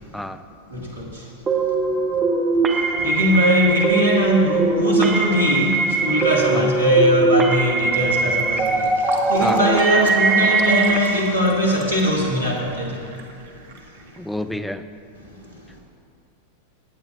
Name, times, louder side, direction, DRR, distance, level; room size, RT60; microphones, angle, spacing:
voice 1, 0.1-0.4 6.5-6.7 9.4-9.6 14.2-14.8, left 1 dB, 5° left, 10 dB, 0.4 m, -28 dB
voice 2, 0.7-1.7 2.1-2.2 2.7-13.2 15.2-15.8, equal, 80° right, -2 dB, 1.7 m, -21 dB
sound 1, 1.5-11.0, right 4 dB, 20° right, 0.8 m, -21 dB
Fill (with liquid), 8.4-14.7, right 4 dB, 60° right, 1.0 m, -36 dB
17.0 x 8.4 x 2.5 m, 2.4 s
figure-of-eight pair, 90°, 0 cm